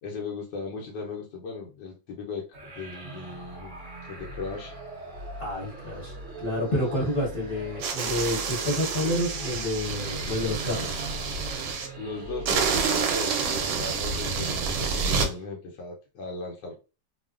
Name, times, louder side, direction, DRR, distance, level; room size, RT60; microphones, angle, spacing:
voice 1, 0.0-3.8 4.0-4.8 12.0-16.8, left 4 dB, 75° left, -1 dB, 1.2 m, -37 dB
sound 1, 2.5-13.1, right 1 dB, 60° right, 0.8 m, -41 dB
voice 2, 5.4-6.1 6.4-10.9, left 1 dB, 45° left, -6 dB, 0.9 m, -29 dB
sound 2, 7.8-11.9 12.5-15.3, right 5 dB, 80° right, 1.2 m, -28 dB
3.0 x 2.1 x 2.3 m, 0.31 s
omnidirectional pair, 2.0 m